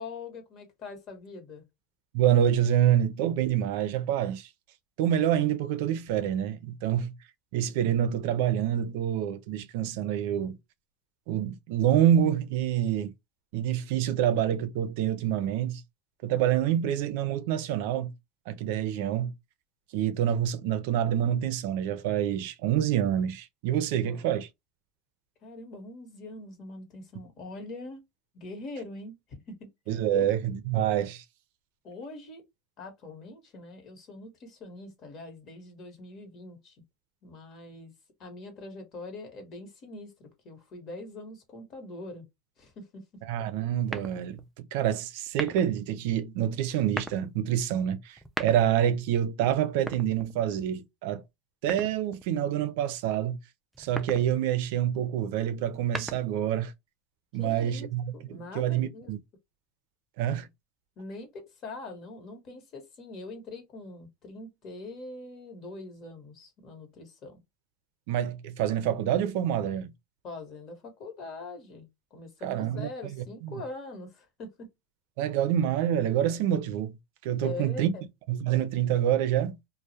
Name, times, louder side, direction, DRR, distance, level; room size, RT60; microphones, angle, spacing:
voice 1, 0.0-1.6 23.9-24.3 25.4-28.0 28.3-29.7 30.1-30.3 31.8-32.5 32.8-36.8 37.2-37.9 38.2-42.2 42.6-43.1 57.4-59.1 61.0-67.4 70.2-74.7 77.4-78.0, left 3 dB, 45° left, 1.0 m, -43 dB
voice 2, 2.1-4.5 5.0-7.1 7.5-10.5 11.3-13.1 13.5-15.8 16.2-18.1 18.5-19.3 19.9-24.5 29.9-31.2 43.3-51.2 51.6-53.4 53.8-56.7 57.3-59.2 60.2-60.5 68.1-69.9 72.4-72.9 73.4-73.5 75.2-76.9 77.2-77.9 78.3-79.6, right 10 dB, 70° right, 0.4 m, -27 dB
sound 1, 43.9-44.5 45.3-45.8 46.7-47.3 48.1-48.9 49.7-50.6 51.7-52.3 53.7-54.3 55.6-56.5, right 1 dB, 5° right, 0.3 m, -38 dB
2.2 x 2.1 x 2.7 m
supercardioid pair, 130°, 0 cm